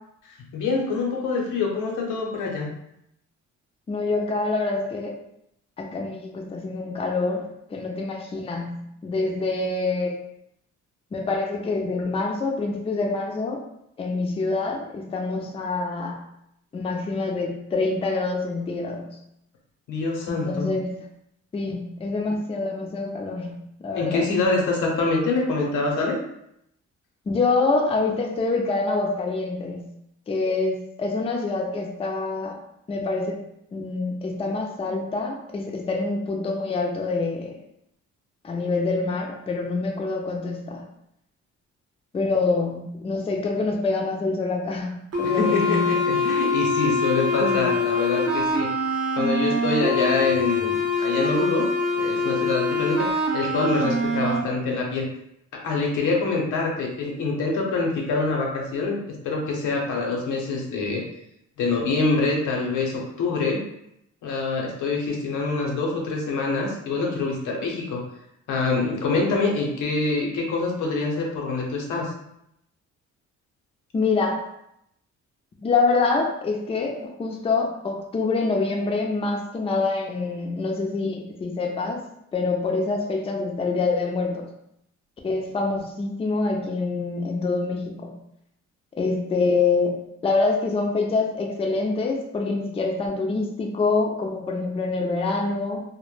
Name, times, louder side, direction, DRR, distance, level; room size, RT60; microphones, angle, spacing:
voice 1, 0.5-2.7 19.9-20.7 23.9-26.2 45.2-48.7 49.1-51.6 51.9-55.1 55.5-61.0 61.6-63.6 64.2-68.0 68.5-72.1, left 3 dB, 85° left, -1 dB, 0.7 m, -25 dB
voice 2, 3.9-5.2 5.8-10.2 11.1-13.6 14.0-16.3 16.7-19.2 20.3-21.0 21.5-24.3 27.3-29.9 30.3-32.6 32.9-33.4 33.7-37.5 38.4-40.8 42.1-45.9 47.4-47.7 73.9-74.4 75.6-82.0 82.3-84.5 85.2-88.2 89.0-95.8, left 3 dB, 20° left, 1 dB, 0.4 m, -26 dB
sound 1, 45.1-54.4, left 2 dB, 55° right, 0.7 m, -24 dB
2.1 x 2.1 x 3.1 m, 0.78 s
cardioid pair, 90°, 30 cm